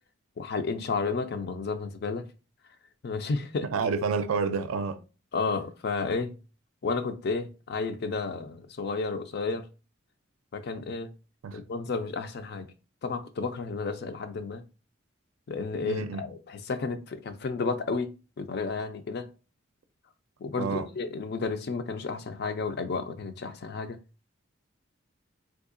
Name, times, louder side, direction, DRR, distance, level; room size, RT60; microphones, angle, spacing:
voice 1, 0.4-2.3 3.0-3.7 5.3-6.3 6.8-9.7 10.5-11.1 11.5-12.7 13.0-14.6 15.5-18.1 18.4-19.3 20.4-24.0, left 4 dB, 50° left, 0.4 m, -32 dB
voice 2, 3.7-5.0 11.4-11.6 15.8-16.3 20.6-20.9, right 5 dB, 90° right, 0.4 m, -29 dB
3.6 x 2.7 x 2.5 m
head